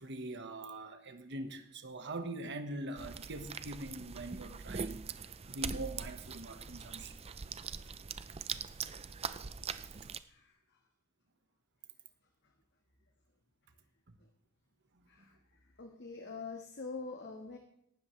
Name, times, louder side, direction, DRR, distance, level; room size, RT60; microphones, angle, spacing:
voice 1, 0.0-7.1 8.5-8.6 14.1-14.2 15.0-15.2, right 2 dB, 60° right, 7 dB, 1.4 m, -43 dB
sound 1, 3.0-10.2, right 6 dB, 30° right, 0.5 m, -42 dB
voice 2, 15.8-17.6, left 4 dB, 55° left, 3 dB, 1.5 m, -44 dB
18.0 x 12.5 x 3.3 m, 0.75 s
head